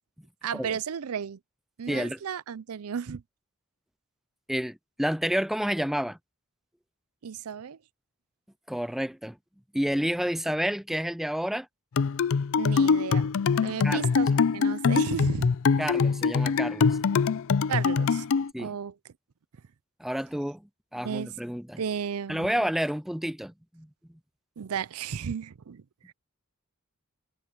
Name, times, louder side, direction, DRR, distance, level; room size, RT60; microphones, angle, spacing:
voice 1, 0.4-1.4 1.8-3.2 7.2-7.8 12.5-13.3 13.5-15.5 17.7-18.3 18.6-19.0 21.0-21.3 21.8-22.6 24.6-26.1, right 7 dB, 85° right, 0.5 m, -34 dB
voice 2, 1.9-2.2 4.5-6.2 8.7-9.4 9.7-11.7 13.8-14.0 15.8-17.0 18.5-18.8 20.0-21.8 22.3-23.9, equal, ahead, 0.3 m, -30 dB
sound 1, 12.0-18.5, left 5 dB, 65° left, 0.5 m, -24 dB
head